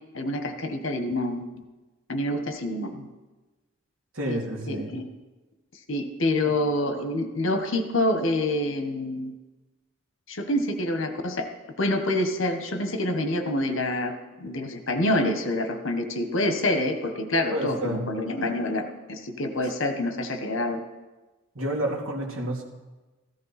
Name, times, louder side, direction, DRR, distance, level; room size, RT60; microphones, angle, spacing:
voice 1, 0.1-1.5 2.1-3.1 4.2-4.4 4.7-5.0 5.9-9.3 10.3-11.4 11.8-14.1 14.4-20.8, left 1 dB, 60° left, 7 dB, 1.3 m, -27 dB
voice 2, 4.1-4.9 6.4-6.5 17.5-18.1 21.5-22.6, right 1 dB, 70° right, -1 dB, 2.5 m, -29 dB
14.5 x 14.0 x 4.3 m, 1.2 s
head